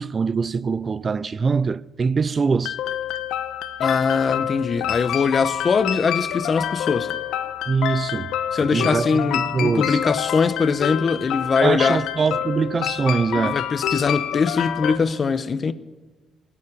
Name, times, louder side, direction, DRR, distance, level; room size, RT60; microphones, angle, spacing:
voice 1, 0.0-2.8 7.7-8.4 8.7-10.0 11.6-13.6, right 5 dB, 40° right, 0.4 m, -23 dB
sound 1, 2.7-15.0, left 10 dB, 85° left, 0.8 m, -27 dB
voice 2, 3.8-7.1 8.5-12.0 13.3-15.7, left 5 dB, 40° left, 0.8 m, -22 dB
17.0 x 7.2 x 9.9 m
cardioid pair, 90°, 0 cm